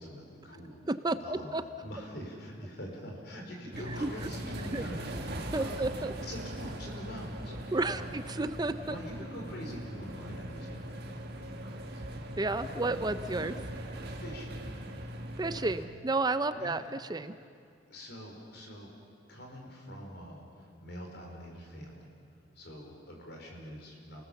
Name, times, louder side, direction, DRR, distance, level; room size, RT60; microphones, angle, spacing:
voice 1, 0.0-0.8 1.2-1.5 1.8-5.9 6.3-8.2 8.9-12.1 12.6-12.8 14.0-14.6 16.5-16.8 17.9-18.9 19.3-22.1 22.6-24.2, equal, 60° left, 0 dB, 5.2 m, -44 dB
voice 2, 0.9-1.6 4.0-4.1 4.7-4.8 5.5-6.1 7.7-8.9 12.4-13.5 15.4-17.3, right 2 dB, 20° right, 11 dB, 0.6 m, -31 dB
sound 1, 3.7-15.9, right 1 dB, 60° right, 1.8 m, -40 dB
29.5 x 19.5 x 7.1 m, 2.4 s
head